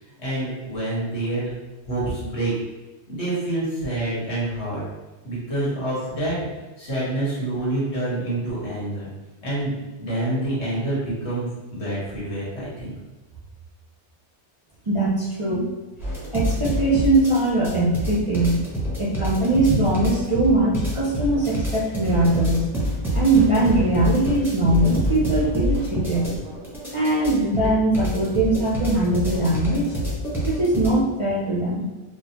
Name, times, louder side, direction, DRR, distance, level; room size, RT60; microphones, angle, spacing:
voice 1, 0.2-1.5 1.8-2.5 3.1-4.8 5.2-6.4 6.8-9.1 9.4-12.9, right 1 dB, 75° left, -8 dB, 1.6 m, -27 dB
voice 2, 14.9-15.7 16.3-18.6 19.0-22.7 23.1-26.3 26.9-30.0 30.4-31.8, right 2 dB, 45° right, -6 dB, 0.4 m, -21 dB
sound 1, 16.0-30.9, equal, ahead, 0.8 m, -26 dB
4.1 x 2.2 x 2.8 m, 1.2 s
omnidirectional pair, 1.2 m